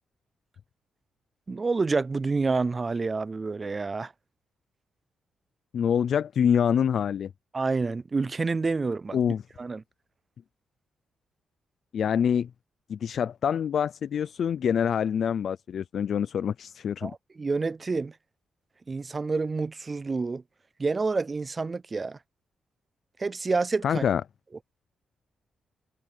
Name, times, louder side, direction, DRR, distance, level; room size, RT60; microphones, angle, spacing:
voice 1, 1.5-4.1 7.5-9.2 9.6-9.8 17.0-18.1 18.9-20.4 20.8-22.2 23.2-24.0, right 4 dB, 25° right, 0.4 m, -28 dB
voice 2, 5.7-7.3 9.1-9.4 11.9-12.5 12.9-17.1 23.8-24.2, left 8 dB, 55° left, 0.4 m, -25 dB
wide cardioid pair, 155°, 0 cm